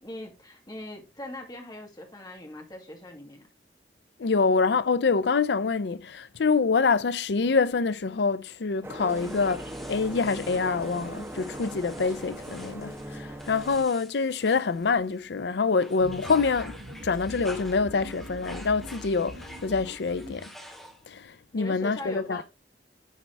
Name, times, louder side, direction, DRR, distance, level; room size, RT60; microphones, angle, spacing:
voice 1, 0.0-3.5 21.5-22.4, left 1 dB, 25° left, 2.0 m, -41 dB
voice 2, 4.2-9.6 9.9-16.8 17.0-20.5 21.1-22.4, left 4 dB, 75° left, 0.5 m, -26 dB
sound 1, 8.8-13.8, right 1 dB, 15° right, 1.1 m, -39 dB
sound 2, 9.1-15.3 15.6-21.2, equal, ahead, 2.0 m, -48 dB
sound 3, 16.0-20.5, equal, 80° right, 1.8 m, -42 dB
10.0 x 4.6 x 3.3 m
head